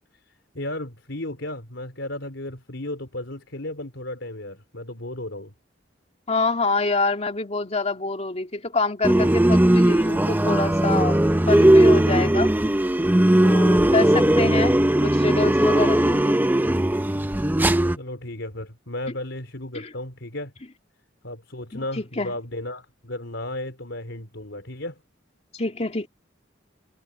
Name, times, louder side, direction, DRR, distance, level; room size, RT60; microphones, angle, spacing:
voice 1, 0.5-5.5 18.0-20.5 21.2-25.0, left 1 dB, 75° left, 4.4 m, -34 dB
voice 2, 6.3-11.2 11.5-12.5 13.4-14.7 15.0-16.5 19.7-19.9 21.7-22.4 25.5-26.1, left 3 dB, 35° left, 2.3 m, -26 dB
sound 1, 9.0-18.0, right 1 dB, 10° right, 0.7 m, -18 dB
head